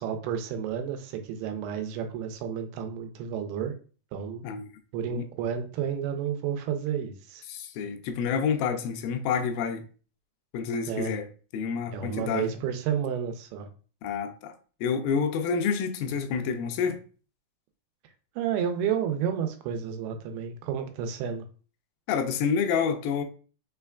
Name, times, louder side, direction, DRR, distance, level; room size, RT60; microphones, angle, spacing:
voice 1, 0.0-3.7 4.1-4.4 4.9-7.4 10.9-11.1 11.9-13.7 18.4-21.4, right 8 dB, 85° right, 2.6 m, -31 dB
voice 2, 7.5-9.9 10.5-12.6 14.0-14.5 14.8-17.0 22.1-23.2, left 6 dB, 80° left, 2.1 m, -28 dB
5.8 x 3.3 x 2.3 m
omnidirectional pair, 4.5 m